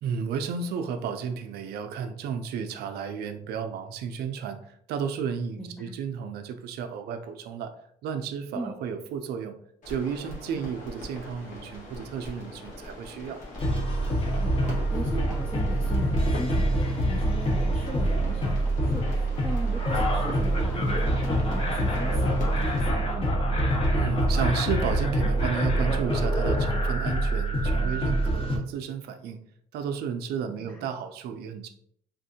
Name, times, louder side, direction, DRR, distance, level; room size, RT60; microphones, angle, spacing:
voice 1, 0.0-7.7 8.0-9.6 9.9-13.4 23.9-29.4 29.7-31.7, right 7 dB, 70° right, 7 dB, 0.5 m, -32 dB
voice 2, 5.6-5.9 8.5-8.7 10.6-10.7 14.4-23.4 30.5-30.8, equal, 5° left, 1 dB, 0.4 m, -38 dB
sound 1, 9.8-22.8, left 1 dB, 50° left, 1.5 m, -41 dB
sound 2, 13.6-28.6, right 1 dB, 35° left, 0.8 m, -25 dB
sound 3, 17.8-25.6, left 3 dB, 75° left, 1.2 m, -45 dB
3.5 x 2.5 x 2.7 m, 0.65 s
cardioid pair, 110°, 17 cm